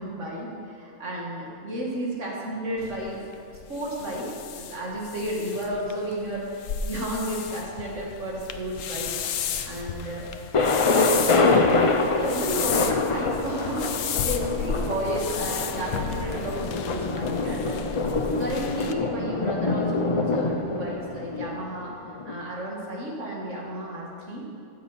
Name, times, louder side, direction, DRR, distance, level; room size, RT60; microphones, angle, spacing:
voice 1, 0.0-3.2 3.7-9.1 9.7-10.3 10.8-17.8 18.4-24.4, equal, 55° right, -3 dB, 2.3 m, -32 dB
sound 1, 2.8-18.9, left 7 dB, 70° left, 1.0 m, -33 dB
Thunder, 10.5-22.3, left 3 dB, 50° left, 0.4 m, -25 dB
16.0 x 7.4 x 4.2 m, 2.5 s
omnidirectional pair, 1.5 m